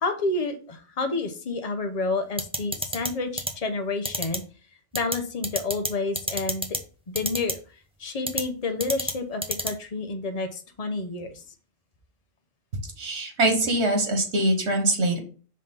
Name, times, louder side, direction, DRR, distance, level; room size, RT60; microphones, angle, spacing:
voice 1, 0.0-4.4 4.9-6.7 7.1-7.6 8.0-11.4, left 3 dB, 40° left, 5 dB, 0.9 m, -29 dB
sound 1, 2.4-3.1 3.4-3.5 4.0-4.4 4.9-5.1 5.4-5.9 6.1-6.8 7.1-7.5 8.3-8.4 8.8-9.1 9.4-9.7, right 1 dB, 5° right, 0.7 m, -27 dB
voice 2, 13.0-15.2, right 1 dB, 80° right, 4 dB, 1.6 m, -23 dB
5.6 x 3.2 x 5.4 m, 0.37 s
omnidirectional pair, 1.1 m